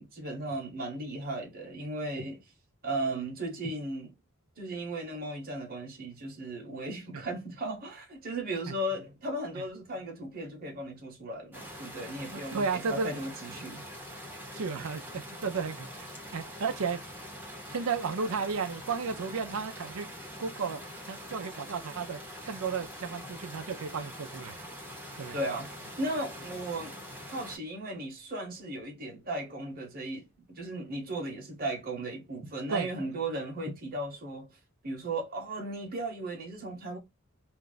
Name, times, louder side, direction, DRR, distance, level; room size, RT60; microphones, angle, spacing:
voice 1, 0.0-2.4 2.8-4.1 4.6-13.8 25.3-27.0 27.3-34.6 34.8-37.0, right 1 dB, 45° right, 1.0 m, -36 dB
sound 1, 11.5-27.6, equal, 10° right, 0.9 m, -44 dB
voice 2, 12.5-13.1 14.5-16.1 16.3-17.0 17.7-20.1 20.4-20.8 21.1-22.2 22.5-24.5 25.2-25.4 32.7-32.9, right 5 dB, 75° right, 0.5 m, -33 dB
2.5 x 2.3 x 3.8 m
head